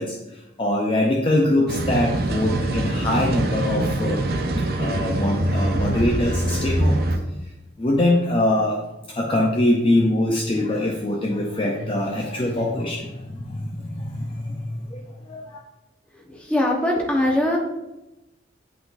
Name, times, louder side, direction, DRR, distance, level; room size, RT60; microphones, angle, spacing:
voice 1, 0.0-7.0 7.8-15.6, left 1 dB, 30° left, -1 dB, 0.5 m, -23 dB
sound 1, 1.7-7.2, right 1 dB, 55° right, 0.7 m, -24 dB
voice 2, 16.2-17.6, left 1 dB, 5° left, -1 dB, 1.0 m, -21 dB
10.0 x 3.9 x 2.6 m, 0.96 s
head